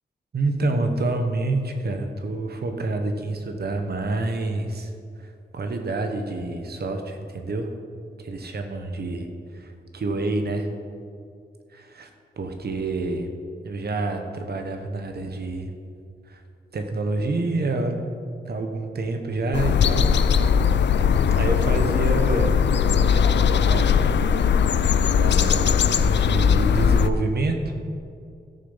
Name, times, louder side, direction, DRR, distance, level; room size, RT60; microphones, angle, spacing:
voice 1, 0.3-4.9 5.2-7.7 8.2-9.3 9.5-10.7 11.7-12.1 12.4-13.3 13.6-15.7 16.3-16.4 16.7-18.0 18.4-20.1 21.3-24.4 25.0-27.7, right 2 dB, 65° right, 5 dB, 1.2 m, -28 dB
sound 1, 19.5-27.1, left 7 dB, 90° left, 0.4 m, -19 dB
13.5 x 6.9 x 5.6 m, 2.4 s
wide cardioid pair, 135°, 18 cm